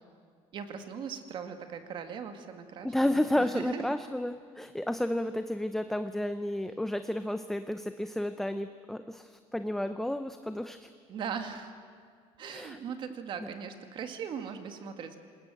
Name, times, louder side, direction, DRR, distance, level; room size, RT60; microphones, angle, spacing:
voice 1, 0.5-4.0 11.1-11.7 12.4-15.2, right 7 dB, 45° right, 7 dB, 2.0 m, -39 dB
voice 2, 2.8-10.9 12.5-12.8, left 1 dB, 5° left, 9 dB, 0.5 m, -31 dB
27.0 x 20.5 x 7.8 m, 2.1 s
cardioid pair, 170°, 12 cm